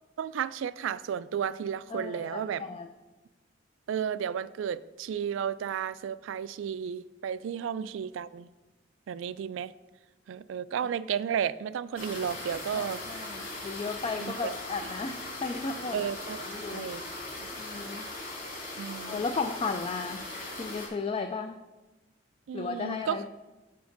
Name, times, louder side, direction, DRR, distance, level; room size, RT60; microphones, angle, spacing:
voice 1, 0.2-2.6 3.9-8.5 9.1-9.7 10.3-13.0 14.2-14.5 15.9-17.0 17.4-17.5 18.8-19.2 22.5-23.2, right 8 dB, 75° right, 17 dB, 0.3 m, -33 dB
voice 2, 1.9-2.9 12.7-16.0 16.5-16.9 17.6-18.1 19.0-20.2 20.6-21.6 22.5-23.3, left 4 dB, 30° left, 6 dB, 0.3 m, -34 dB
sound 1, 12.0-20.9, left 2 dB, 50° left, 2.2 m, -39 dB
15.0 x 5.2 x 2.6 m, 1.1 s
head